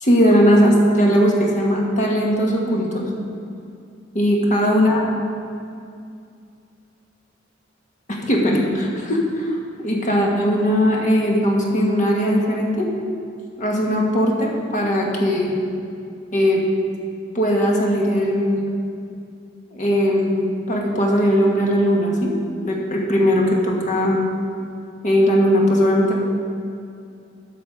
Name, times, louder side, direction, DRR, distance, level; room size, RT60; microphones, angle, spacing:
voice 1, 0.0-3.1 4.1-5.0 8.1-12.9 13.5-15.5 16.3-16.6 17.3-18.6 19.7-20.4 20.7-22.3 22.6-24.2 25.0-26.2, equal, 40° left, -1 dB, 1.5 m, -19 dB
12.0 x 6.2 x 4.9 m, 2.4 s
head